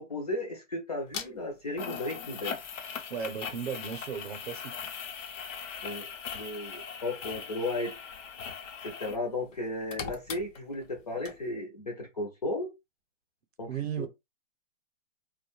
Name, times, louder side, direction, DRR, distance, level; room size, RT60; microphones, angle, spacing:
voice 1, 0.0-2.6 5.8-6.0 6.3-7.9 8.8-12.7 13.6-13.7 14.0-14.1, left 2 dB, 35° left, 0.4 m, -35 dB
sound 1, 1.1-1.3 1.8-9.2 9.5-11.0 11.3-11.4, left 7 dB, 80° left, 0.7 m, -40 dB
voice 2, 3.1-4.8 13.7-14.1, right 7 dB, 55° right, 0.6 m, -35 dB
2.3 x 2.2 x 2.9 m
hypercardioid pair, 170°, 38 cm